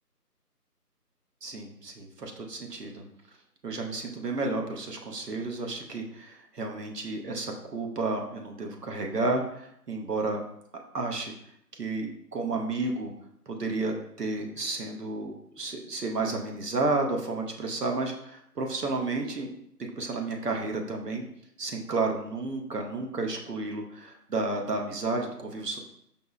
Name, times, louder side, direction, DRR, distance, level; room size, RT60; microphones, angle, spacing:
voice 1, 1.4-3.0 3.6-10.4 10.9-11.3 11.7-13.1 13.5-19.5 20.0-21.2 21.6-25.8, right 3 dB, 75° right, 2 dB, 0.8 m, -31 dB
5.3 x 2.0 x 2.3 m, 0.72 s
figure-of-eight pair, 165°, 49 cm